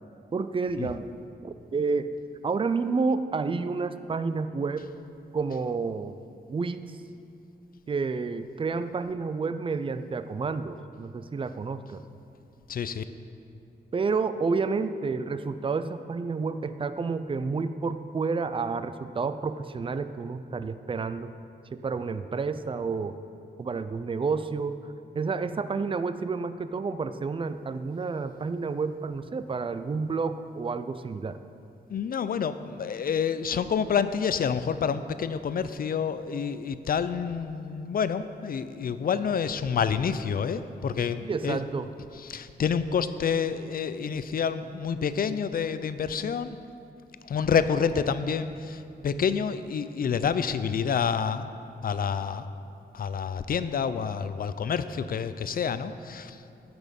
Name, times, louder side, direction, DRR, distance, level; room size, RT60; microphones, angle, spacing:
voice 1, 0.3-1.1 1.4-2.1 2.4-4.9 5.3-6.2 6.5-6.8 7.9-12.0 13.9-21.3 21.7-23.2 23.6-24.8 25.2-31.4 41.3-41.9, right 4 dB, 30° right, 11 dB, 0.4 m, -30 dB
voice 2, 12.7-13.0 31.9-41.6 42.1-46.6 47.2-51.5 51.8-52.5 52.9-56.4, left 6 dB, 55° left, 12 dB, 0.5 m, -28 dB
16.5 x 6.1 x 5.3 m, 2.6 s
wide cardioid pair, 145°, 18 cm